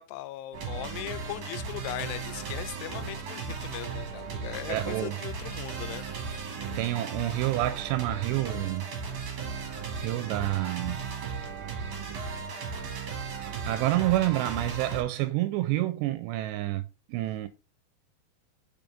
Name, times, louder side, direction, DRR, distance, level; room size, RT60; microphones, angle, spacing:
voice 1, 0.0-6.1, left 15 dB, 85° left, 2.6 m, -39 dB
sound 1, 0.5-15.0, right 5 dB, 60° right, 2.1 m, -36 dB
voice 2, 4.7-5.1 6.8-8.9 10.0-11.2 13.7-16.8 17.1-17.5, right 16 dB, 90° right, 2.7 m, -28 dB
5.4 x 5.2 x 3.5 m
omnidirectional pair, 4.9 m